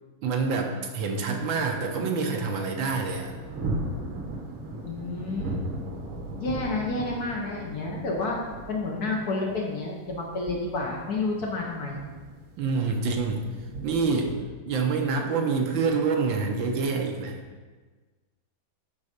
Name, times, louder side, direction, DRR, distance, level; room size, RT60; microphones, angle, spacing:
voice 1, 0.2-3.3 12.6-13.5 13.8-14.3 14.7-17.4, right 4 dB, 70° right, 3 dB, 1.5 m, -26 dB
sound 1, 2.9-14.4, right 2 dB, 85° right, 1.9 m, -37 dB
voice 2, 4.8-5.6 6.4-8.4 8.7-12.0, left 3 dB, 55° left, -1 dB, 1.2 m, -30 dB
9.7 x 4.0 x 5.1 m, 1.4 s
omnidirectional pair, 2.3 m